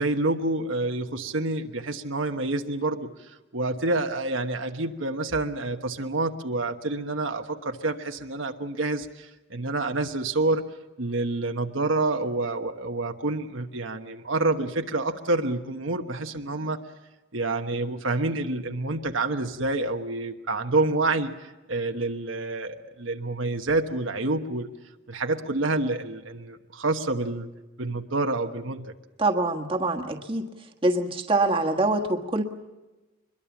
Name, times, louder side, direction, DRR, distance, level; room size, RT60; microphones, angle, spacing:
voice 1, 0.0-10.6 11.0-16.8 17.3-24.7 25.1-27.5 27.8-28.9, right 2 dB, 75° right, 5 dB, 1.2 m, -28 dB
voice 2, 29.2-30.5 30.8-32.4, right 2 dB, 25° right, 3 dB, 1.4 m, -24 dB
24.0 x 22.0 x 7.2 m, 1.1 s
head